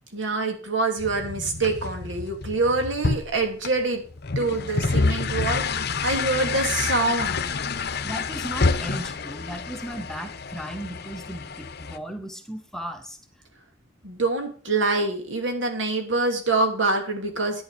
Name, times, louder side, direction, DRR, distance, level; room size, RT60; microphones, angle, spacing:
voice 1, 0.1-4.0 4.3-7.6 14.0-17.6, right 3 dB, 75° right, 4 dB, 2.9 m, -25 dB
sound 1, 1.0-12.0, left 4 dB, 55° left, 0.8 m, -28 dB
voice 2, 8.0-13.2, equal, 5° left, 5 dB, 1.1 m, -36 dB
11.5 x 9.8 x 5.1 m, 0.39 s
head